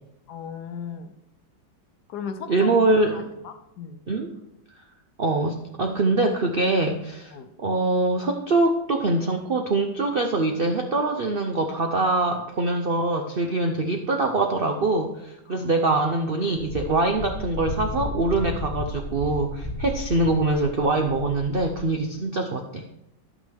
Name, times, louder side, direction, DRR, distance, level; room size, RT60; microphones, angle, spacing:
voice 1, 0.3-1.1 2.1-2.7 3.4-4.0 7.3-7.5 15.5-15.7, left 7 dB, 65° left, 8 dB, 1.1 m, -36 dB
voice 2, 2.5-3.3 4.1-4.3 5.2-7.3 7.6-22.8, right 2 dB, 85° right, 3 dB, 0.4 m, -23 dB
Wind, 16.6-21.9, left 2 dB, 25° left, 0.8 m, -34 dB
11.0 x 8.8 x 3.5 m, 0.85 s
omnidirectional pair, 2.1 m